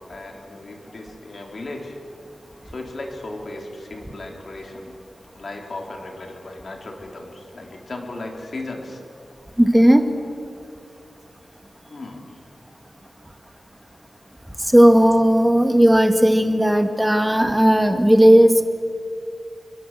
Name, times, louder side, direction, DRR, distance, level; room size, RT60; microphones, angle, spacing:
voice 1, 0.1-2.0 2.7-5.0 5.3-9.0 11.9-12.4, left 2 dB, 45° left, 1 dB, 4.3 m, -36 dB
voice 2, 9.6-10.0 14.6-18.6, equal, 5° right, 6 dB, 2.0 m, -15 dB
29.5 x 24.0 x 7.8 m, 2.4 s
wide cardioid pair, 150°, 0 cm